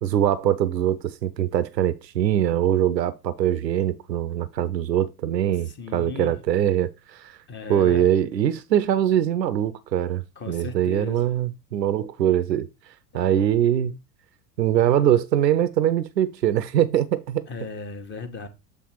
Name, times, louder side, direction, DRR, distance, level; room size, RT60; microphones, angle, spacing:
voice 1, 0.0-7.4 7.7-12.7 13.1-14.0 14.6-17.5, right 11 dB, 85° right, 0.6 m, -22 dB
voice 2, 5.7-6.4 7.5-8.1 10.4-11.3 13.1-13.2 17.5-18.5, left 4 dB, 20° left, 1.1 m, -36 dB
7.4 x 3.4 x 4.5 m
figure-of-eight pair, 85°, 49 cm